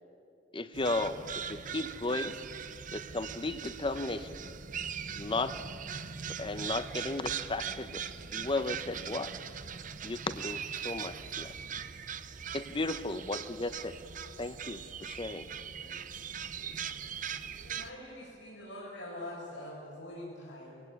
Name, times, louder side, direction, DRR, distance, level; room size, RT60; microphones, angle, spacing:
voice 1, 0.5-1.2 1.5-2.3 2.9-4.3 5.2-5.5 6.4-8.0 8.3-9.3 10.0-11.5 12.5-13.9 14.4-15.4 15.8-16.1, left 2 dB, 30° left, 0.9 m, -35 dB
sound 1, 0.7-17.9, right 7 dB, 45° right, 0.7 m, -40 dB
voice 2, 12.3-12.8 16.5-17.9, equal, 55° left, 3.5 m, -66 dB
voice 3, 17.6-20.8, left 1 dB, 90° left, 6.1 m, -44 dB
23.5 x 16.5 x 9.6 m
head